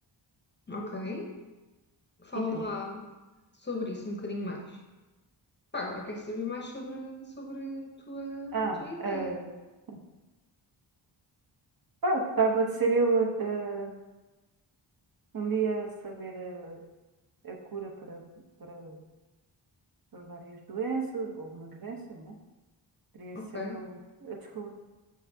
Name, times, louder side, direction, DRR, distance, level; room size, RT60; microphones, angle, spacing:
voice 1, 0.7-1.3 2.2-3.1 3.6-4.8 5.7-9.4 23.3-23.8, left 2 dB, 25° left, 0 dB, 0.7 m, -36 dB
voice 2, 8.5-9.5 12.0-13.9 15.3-16.8 17.4-18.2 18.6-19.0 20.1-22.3 23.1-24.7, right 4 dB, 50° right, 0 dB, 0.9 m, -31 dB
6.6 x 6.2 x 2.7 m, 1.2 s
wide cardioid pair, 150°, 47 cm